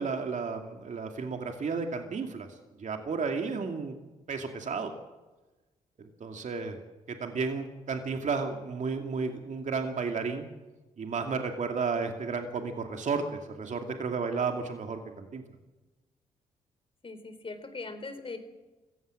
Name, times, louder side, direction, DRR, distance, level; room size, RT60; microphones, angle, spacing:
voice 1, 0.0-3.9 4.3-4.9 6.0-6.8 7.1-10.5 11.0-15.4, right 4 dB, 55° right, 4 dB, 2.5 m, -33 dB
voice 2, 17.0-18.4, left 3 dB, 40° left, 9 dB, 3.9 m, -40 dB
24.5 x 15.5 x 7.6 m, 1.1 s
supercardioid pair, 55°, 15 cm